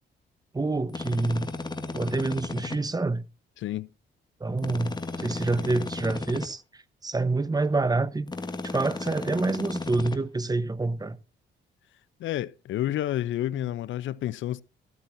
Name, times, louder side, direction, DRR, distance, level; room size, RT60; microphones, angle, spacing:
voice 1, 0.5-1.5 1.9-3.2 4.4-8.3 8.6-11.2, right 3 dB, 20° right, 1.1 m, -27 dB
sound 1, 0.9-2.8 4.6-6.5 8.3-10.2, left 3 dB, 20° left, 1.7 m, -34 dB
voice 2, 3.6-3.9 12.2-14.6, left 13 dB, 75° left, 0.6 m, -30 dB
14.0 x 13.5 x 2.7 m
cardioid pair, 90°, 20 cm